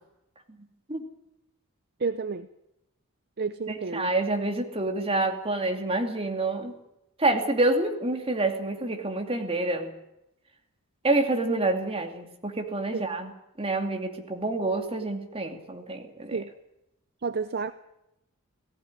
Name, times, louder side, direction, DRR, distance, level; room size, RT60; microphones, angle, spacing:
voice 1, 2.0-2.5 3.4-4.1 12.9-13.0 16.3-16.5 17.2-17.7, right 4 dB, 50° right, 12 dB, 0.7 m, -30 dB
voice 2, 3.7-6.8 7.2-9.9 11.0-13.3 13.6-16.4, right 2 dB, 25° right, 4 dB, 2.6 m, -27 dB
17.5 x 15.0 x 9.7 m, 0.88 s
head